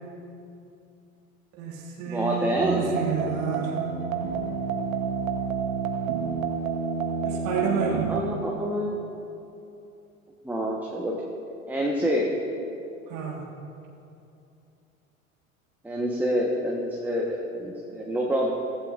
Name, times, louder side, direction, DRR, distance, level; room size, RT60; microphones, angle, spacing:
voice 1, 1.5-3.8 7.2-8.1 13.1-13.5, right 6 dB, 45° right, -1 dB, 1.8 m, -30 dB
voice 2, 2.1-2.8 7.9-8.9 10.4-11.1 11.7-12.3 15.8-18.5, equal, 5° right, -2 dB, 1.3 m, -27 dB
sound 1, 2.6-8.2, right 6 dB, 70° right, 1.2 m, -29 dB
15.5 x 15.5 x 2.6 m, 2.7 s
figure-of-eight pair, 80°, 42 cm